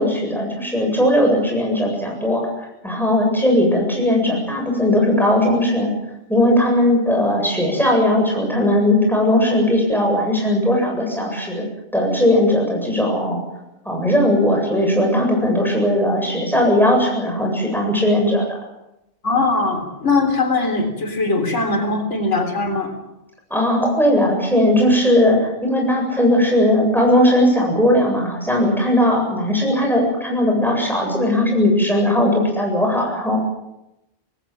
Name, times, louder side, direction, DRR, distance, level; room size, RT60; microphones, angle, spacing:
voice 1, 0.0-2.4 2.8-5.9 6.3-11.6 11.9-13.4 13.9-18.6 23.5-33.4, left 1 dB, ahead, 0 dB, 7.8 m, -18 dB
voice 2, 19.2-23.0, left 3 dB, 90° left, 4 dB, 3.8 m, -20 dB
26.5 x 18.5 x 7.6 m, 0.89 s
omnidirectional pair, 1.2 m